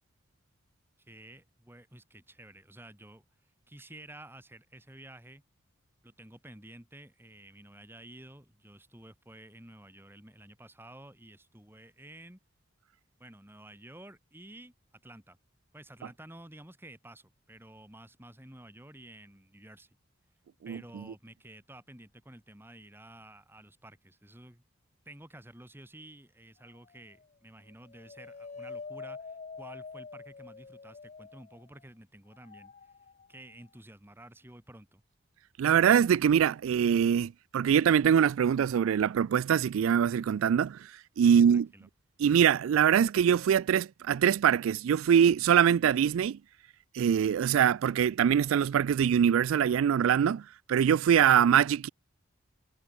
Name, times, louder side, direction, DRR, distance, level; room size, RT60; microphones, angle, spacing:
voice 1, 1.1-3.2 3.7-5.4 6.0-12.4 13.2-14.7 15.0-15.4 15.7-19.9 20.6-24.6 25.1-32.7 33.3-35.0 41.2-41.9, right 1 dB, 10° right, 2.5 m, -51 dB
sound 1, 26.6-27.3 27.7-31.8 32.3-33.6, left 4 dB, 35° left, 0.5 m, -46 dB
voice 2, 35.6-41.7 42.2-46.4 46.9-51.9, right 8 dB, 85° right, 0.3 m, -23 dB
head